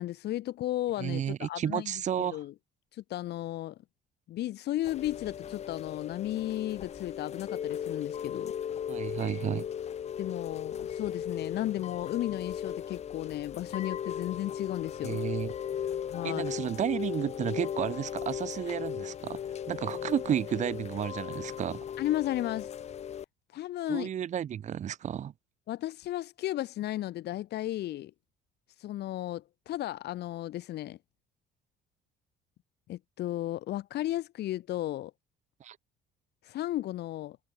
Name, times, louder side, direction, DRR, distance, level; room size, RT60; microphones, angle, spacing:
voice 1, 0.0-1.9 2.2-2.5 2.9-3.8 4.3-8.5 10.2-15.2 16.1-16.4 22.0-22.7 23.5-24.1 25.7-28.1 28.8-31.0 32.9-35.1 36.4-37.4, left 14 dB, 60° left, 1.8 m, -34 dB
voice 2, 1.0-2.4 8.9-9.7 15.0-15.5 16.2-19.4 19.7-21.8 23.9-25.3 35.6-35.8, right 9 dB, 40° right, 1.2 m, -32 dB
Chime / Rain, 4.8-23.2, left 9 dB, 35° left, 1.0 m, -37 dB
cardioid pair, 150°, 19 cm